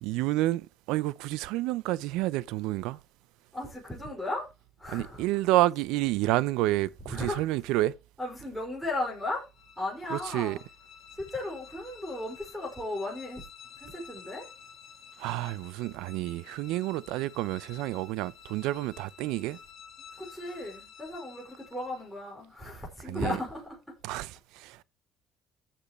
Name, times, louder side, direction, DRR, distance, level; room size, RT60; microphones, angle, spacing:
voice 1, 0.0-3.0 4.9-7.9 10.1-10.6 15.2-19.6 23.1-23.4 24.0-24.8, right 17 dB, 85° right, 0.5 m, -29 dB
voice 2, 3.5-4.5 4.8-5.2 7.1-7.4 8.2-9.4 9.8-10.6 11.2-13.4 13.8-14.5 20.2-23.8, left 2 dB, 5° right, 5.1 m, -35 dB
sound 1, 8.9-22.3, left 7 dB, 50° left, 2.4 m, -51 dB
15.5 x 7.5 x 3.1 m
cardioid pair, 120°, 0 cm